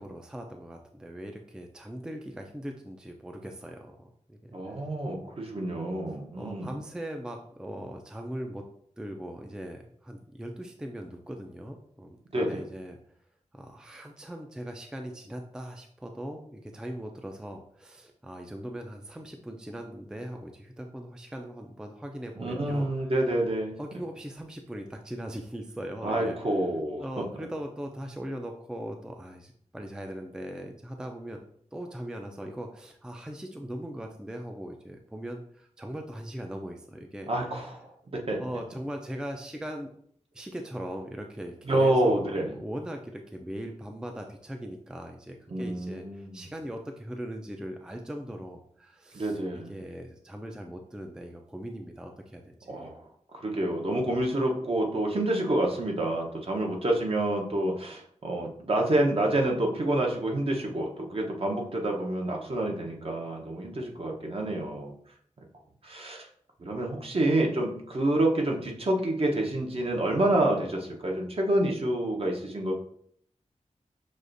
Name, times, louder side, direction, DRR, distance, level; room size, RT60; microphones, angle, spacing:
voice 1, 0.0-4.9 6.3-8.6 9.0-13.0 13.5-23.1 23.8-26.4 27.0-31.4 31.7-37.3 38.4-39.9 40.3-52.9, equal, 5° right, 3 dB, 0.4 m, -40 dB
voice 2, 4.5-6.8 12.3-12.6 22.4-23.8 26.0-27.2 37.3-38.4 41.7-42.5 45.5-46.4 49.1-49.7 52.7-53.0 53.3-64.9 65.8-66.3 66.6-72.7, right 1 dB, 50° right, 0 dB, 0.9 m, -28 dB
6.3 x 2.4 x 2.6 m, 0.64 s
wide cardioid pair, 80°, 13 cm